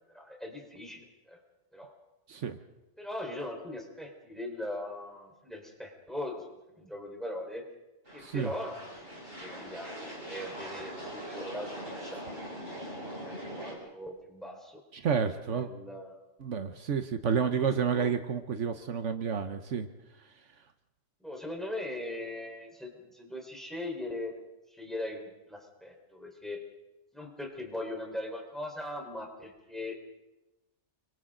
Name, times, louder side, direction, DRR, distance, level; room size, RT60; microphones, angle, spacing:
voice 1, 0.1-1.4 1.7-1.9 3.0-7.6 8.1-8.8 9.4-12.5 13.0-14.8 15.5-16.2 17.6-18.1 21.2-24.4 24.7-26.6 27.1-30.0, left 1 dB, ahead, 0 dB, 4.3 m, -40 dB
sound 1, 8.0-13.8, right 1 dB, 50° right, 7.5 m, -42 dB
voice 2, 8.2-8.5 14.9-15.7 16.4-19.9, right 6 dB, 75° right, 8 dB, 1.3 m, -30 dB
30.0 x 24.0 x 3.9 m, 1.0 s
omnidirectional pair, 1.3 m